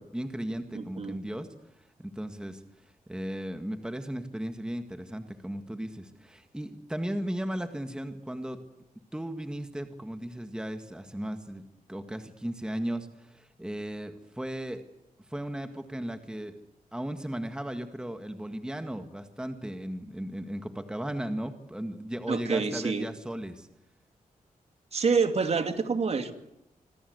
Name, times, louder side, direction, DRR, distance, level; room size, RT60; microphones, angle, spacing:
voice 1, 0.0-1.5 1.8-8.6 9.1-11.6 11.9-14.8 15.3-16.6 16.9-23.7, right 1 dB, 5° right, 7 dB, 1.8 m, -36 dB
voice 2, 0.7-1.2 22.3-23.1 24.9-26.3, right 5 dB, 45° right, 8 dB, 2.6 m, -27 dB
26.5 x 26.0 x 8.1 m, 0.86 s
wide cardioid pair, 160°, 15 cm